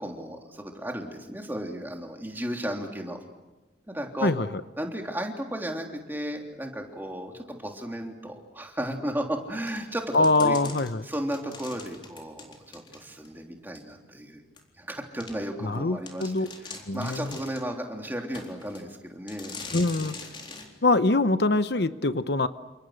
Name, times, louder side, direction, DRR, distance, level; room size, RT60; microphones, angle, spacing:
voice 1, 0.0-3.2 3.9-4.3 4.8-10.6 11.0-14.4 14.8-19.5, equal, 10° right, 2 dB, 3.3 m, -34 dB
sound 1, 9.7-13.3 13.7-13.8 14.6-14.7 15.2-15.3 15.7-15.8 16.1-17.7 18.3-18.9 19.3-20.7, left 4 dB, 25° left, 3.9 m, -43 dB
voice 2, 10.1-11.1 15.6-16.5 16.9-17.3 19.7-20.1 20.8-22.5, left 2 dB, 60° left, 11 dB, 0.9 m, -23 dB
29.5 x 27.5 x 6.6 m, 1.1 s
head